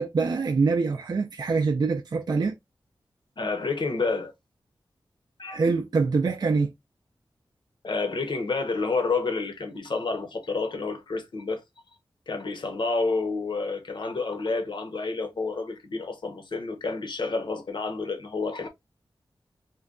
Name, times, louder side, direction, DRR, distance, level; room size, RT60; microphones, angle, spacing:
voice 1, 0.0-2.5 5.5-6.7, right 4 dB, 50° right, 0.3 m, -24 dB
voice 2, 3.4-4.3 5.4-5.6 7.8-11.6 12.3-18.7, left 3 dB, 60° left, 0.8 m, -29 dB
3.7 x 2.2 x 2.3 m
wide cardioid pair, 60°, 9 cm